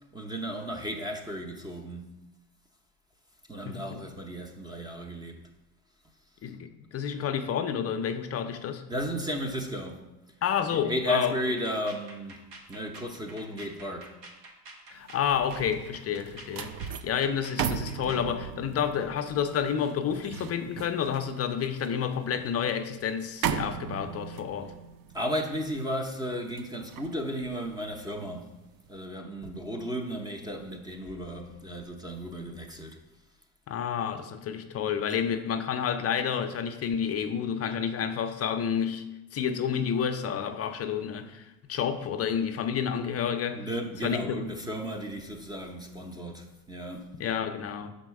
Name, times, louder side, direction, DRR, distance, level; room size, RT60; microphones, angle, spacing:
voice 1, 0.1-2.1 3.5-5.4 8.9-10.1 10.8-12.4 12.7-14.2 25.1-28.6 28.9-33.0 43.5-47.1, equal, 10° right, 0.6 m, -34 dB
voice 2, 3.6-4.0 6.4-8.8 10.4-11.4 14.9-24.7 33.7-39.0 39.3-43.6 44.0-44.4 47.2-47.9, left 8 dB, 35° left, 0.5 m, -30 dB
sound 1, 11.4-18.3, right 2 dB, 80° right, 1.4 m, -49 dB
sound 2, 15.0-28.3 28.7-29.0, right 8 dB, 50° right, 0.5 m, -38 dB
6.1 x 4.2 x 4.6 m
supercardioid pair, 100°, 44 cm